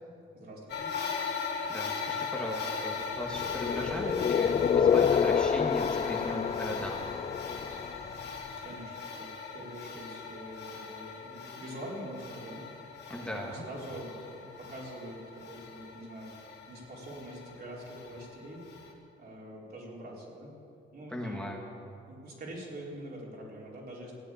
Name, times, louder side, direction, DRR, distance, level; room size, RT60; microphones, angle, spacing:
voice 1, 0.3-0.9 8.6-12.6 13.2-16.3 16.7-18.6 19.2-20.5 20.9-21.6 22.1-24.1, right 1 dB, 50° right, -4 dB, 4.5 m, -44 dB
sound 1, 0.7-18.9, left 5 dB, 60° left, 2.9 m, -39 dB
voice 2, 1.7-7.1 13.1-13.7 21.1-21.6, equal, 5° left, -1 dB, 1.9 m, -37 dB
sound 2, 3.3-8.3, left 7 dB, 35° left, 0.4 m, -28 dB
16.0 x 8.7 x 8.6 m, 2.7 s
cardioid pair, 90°, 20 cm